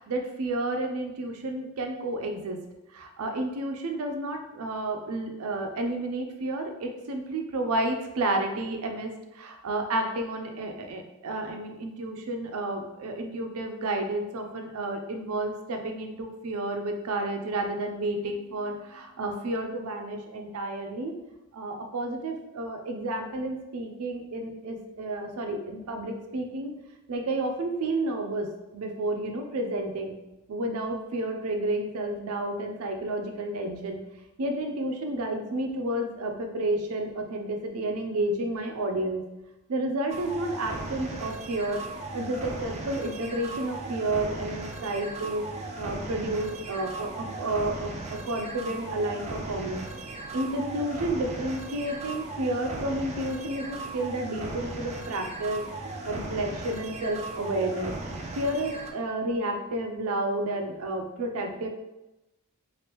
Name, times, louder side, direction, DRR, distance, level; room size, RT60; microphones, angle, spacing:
voice 1, 0.0-2.6 2.9-21.2 21.5-26.7 27.1-30.2 30.5-34.1 34.4-39.3 39.7-41.9 42.1-45.4 45.8-49.9 50.3-55.6 56.0-58.0 58.4-61.7, right 1 dB, 90° right, 4 dB, 0.5 m, -31 dB
sound 1, 40.1-58.9, right 2 dB, 30° right, 0.3 m, -37 dB
2.9 x 2.5 x 3.3 m, 0.97 s
head